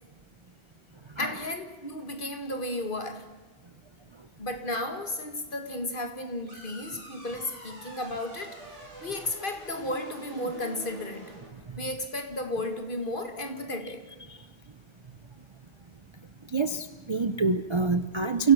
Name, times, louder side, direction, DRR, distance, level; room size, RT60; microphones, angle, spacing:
voice 1, 1.2-3.3 4.4-8.6 9.0-11.3 11.8-14.1, left 1 dB, 45° left, 2.2 m, -34 dB
sound 1, 6.5-11.5, equal, 75° right, 6.2 m, -46 dB
voice 2, 16.5-18.5, right 4 dB, 30° right, 0.6 m, -25 dB
29.5 x 16.5 x 6.0 m
omnidirectional pair, 1.2 m